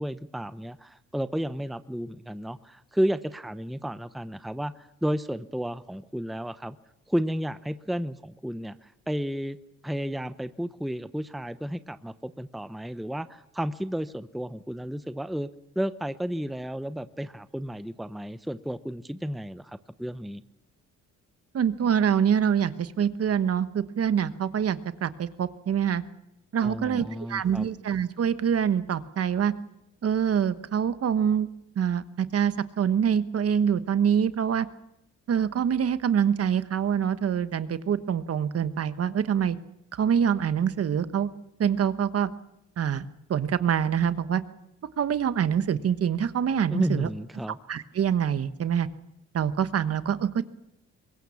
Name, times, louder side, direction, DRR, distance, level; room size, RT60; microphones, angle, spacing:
voice 1, 0.0-6.8 7.1-9.6 9.8-15.5 15.8-20.4 26.6-27.7 46.7-47.6, equal, ahead, 13 dB, 0.8 m, -32 dB
voice 2, 21.5-26.0 26.5-29.5 30.0-31.5 31.8-34.7 35.3-39.6 39.9-41.3 41.6-42.3 42.8-44.4 45.0-47.1 47.7-48.9 49.3-50.4, right 8 dB, 50° right, 13 dB, 1.3 m, -25 dB
23.5 x 21.0 x 7.2 m, 0.83 s
cardioid pair, 90°, 30 cm